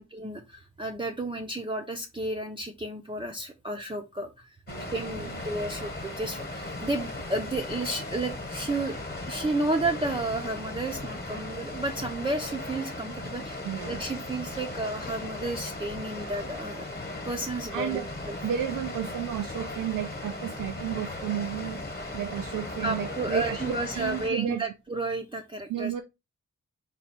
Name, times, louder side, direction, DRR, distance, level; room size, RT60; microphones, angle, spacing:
voice 1, 0.0-4.6 4.9-9.0 9.3-16.8 17.2-18.4 22.8-25.9, right 2 dB, 15° right, 0.6 m, -32 dB
Water, 4.7-24.3, left 2 dB, 30° left, 1.2 m, -37 dB
voice 2, 13.6-14.0 17.7-18.1 18.4-21.8 22.1-24.6 25.7-26.0, right 10 dB, 85° right, 0.5 m, -32 dB
4.2 x 2.3 x 4.2 m
cardioid pair, 80°, 32 cm